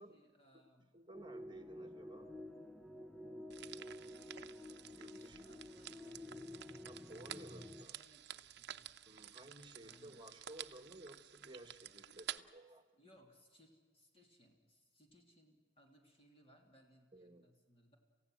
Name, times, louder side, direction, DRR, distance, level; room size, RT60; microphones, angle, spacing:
voice 1, 0.0-0.9 3.9-6.3 7.9-9.0 9.8-10.3 12.9-18.0, equal, 30° left, 1 dB, 3.1 m, -67 dB
voice 2, 0.9-2.4 5.0-5.4 6.8-8.0 9.1-12.8 17.1-17.5, right 1 dB, 25° right, 8 dB, 1.6 m, -56 dB
sound 1, 1.1-7.9, left 1 dB, 5° left, 0.6 m, -51 dB
sound 2, 3.5-12.4, right 11 dB, 60° right, 0.8 m, -51 dB
28.0 x 16.0 x 8.0 m, 1.5 s
head